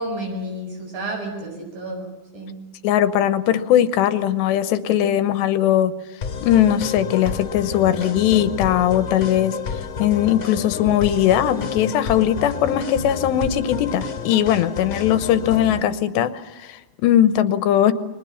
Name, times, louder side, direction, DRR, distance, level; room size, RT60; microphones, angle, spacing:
voice 1, 0.0-2.6, right 1 dB, 55° right, 3 dB, 9.0 m, -31 dB
voice 2, 2.8-5.9 6.4-9.6 10.0-16.3 16.6-17.9, left 11 dB, 80° left, 13 dB, 3.1 m, -19 dB
sound 1, 6.2-15.8, left 6 dB, 20° left, 2.7 m, -30 dB
30.0 x 23.5 x 7.2 m, 1.1 s
omnidirectional pair, 5.0 m